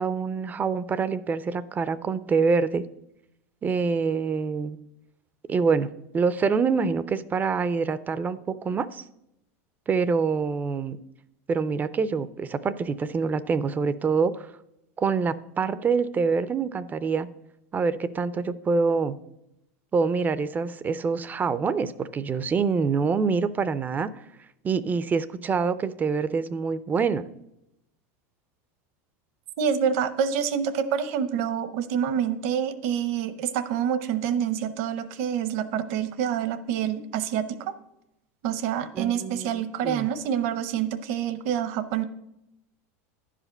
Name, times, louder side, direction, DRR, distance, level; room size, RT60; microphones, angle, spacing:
voice 1, 0.0-2.8 3.6-4.8 5.5-5.9 6.1-9.0 9.9-11.0 11.5-14.5 15.0-17.3 17.7-19.2 19.9-24.2 24.6-27.2 39.0-40.1, right 5 dB, 20° right, 15 dB, 0.4 m, -26 dB
voice 2, 29.6-37.7 38.4-42.0, right 8 dB, 65° right, 12 dB, 0.9 m, -27 dB
10.5 x 5.0 x 6.5 m, 0.85 s
supercardioid pair, 120°, 8 cm